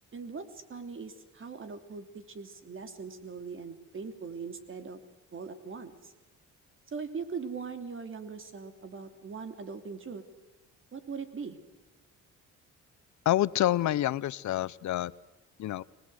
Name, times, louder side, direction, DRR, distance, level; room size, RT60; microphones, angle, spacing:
voice 1, 0.1-5.0 5.3-6.1 6.9-10.2 10.9-11.6, right 5 dB, 40° right, 8 dB, 3.2 m, -40 dB
voice 2, 13.2-15.1 15.6-15.8, left 13 dB, 70° left, 19 dB, 0.8 m, -27 dB
25.0 x 19.5 x 8.0 m, 1.1 s
cardioid pair, 90°, 30 cm